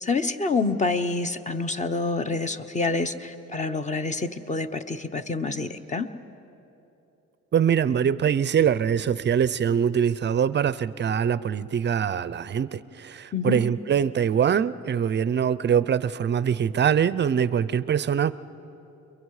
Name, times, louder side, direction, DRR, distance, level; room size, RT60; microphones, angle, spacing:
voice 1, 0.0-6.1 13.3-13.6, left 3 dB, 25° left, 10 dB, 0.9 m, -27 dB
voice 2, 7.5-18.3, right 8 dB, 35° right, 17 dB, 0.5 m, -23 dB
29.0 x 22.5 x 4.9 m, 2.9 s
cardioid pair, 95°, 30 cm